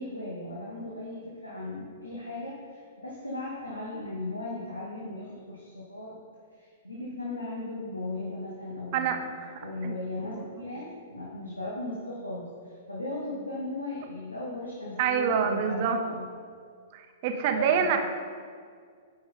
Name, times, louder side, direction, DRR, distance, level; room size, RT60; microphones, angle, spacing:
voice 1, 0.0-6.1 6.6-9.2 9.6-16.3 17.5-18.0, left 2 dB, 85° left, -5 dB, 1.4 m, -37 dB
voice 2, 8.9-9.9 10.3-10.4 15.0-16.0 16.9-18.0, right 7 dB, 40° right, 6 dB, 0.8 m, -27 dB
9.9 x 6.1 x 3.9 m, 2.1 s
figure-of-eight pair, 105°, 0 cm